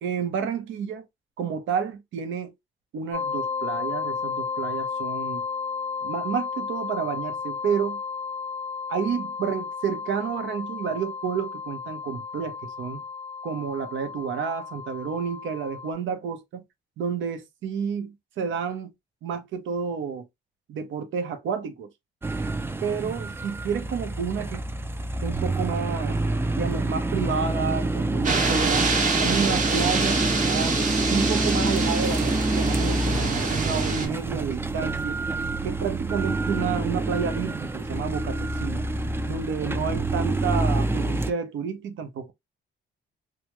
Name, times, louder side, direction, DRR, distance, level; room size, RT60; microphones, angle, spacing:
voice 1, 0.0-1.0 1.4-2.5 2.9-5.4 6.0-8.0 8.9-13.0 13.4-16.6 17.0-18.9 19.2-20.3 20.7-21.9 22.8-24.6 25.2-26.2 26.6-28.9 29.2-30.8 31.1-35.2 35.6-38.9 39.3-42.3, right 6 dB, 75° right, 0.8 m, -30 dB
sound 1, 3.1-15.9, left 5 dB, 35° left, 0.6 m, -33 dB
sound 2, 22.2-41.3, right 2 dB, 10° right, 0.4 m, -27 dB
sound 3, 28.2-34.1, right 4 dB, 40° right, 1.0 m, -26 dB
2.9 x 2.3 x 2.9 m
cardioid pair, 90°, 20 cm